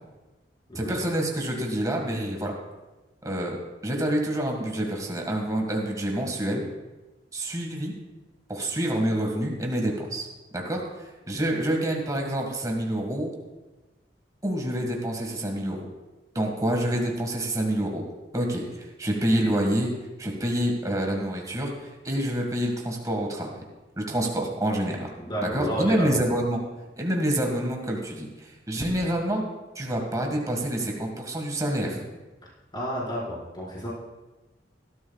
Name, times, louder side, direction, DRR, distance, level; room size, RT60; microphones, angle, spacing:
voice 1, 0.7-2.5 3.2-3.6 3.8-6.6 7.3-7.9 8.5-10.3 10.5-10.8 11.3-13.3 14.4-15.8 16.3-18.0 18.3-19.9 20.2-23.6 24.0-25.1 25.4-26.6 27.0-29.4 29.7-32.0, right 1 dB, 20° right, 0 dB, 1.7 m, -27 dB
voice 2, 25.2-26.1 32.7-33.9, right 1 dB, 25° left, -7 dB, 5.0 m, -31 dB
20.0 x 13.0 x 2.4 m, 1.1 s
head